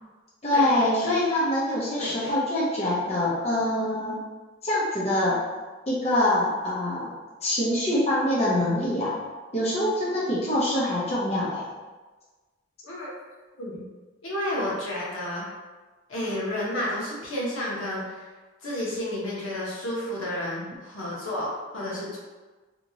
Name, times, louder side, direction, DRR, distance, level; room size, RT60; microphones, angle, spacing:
voice 1, 0.4-4.2 4.6-5.4 5.9-7.2 7.4-9.1 9.5-11.7, left 1 dB, 30° left, -7 dB, 0.6 m, -24 dB
voice 2, 2.0-2.3 12.8-13.1 13.6-13.8 14.2-15.4 16.1-18.3 18.6-22.2, left 1 dB, 85° left, -6 dB, 1.0 m, -31 dB
2.8 x 2.7 x 2.7 m, 1.3 s
head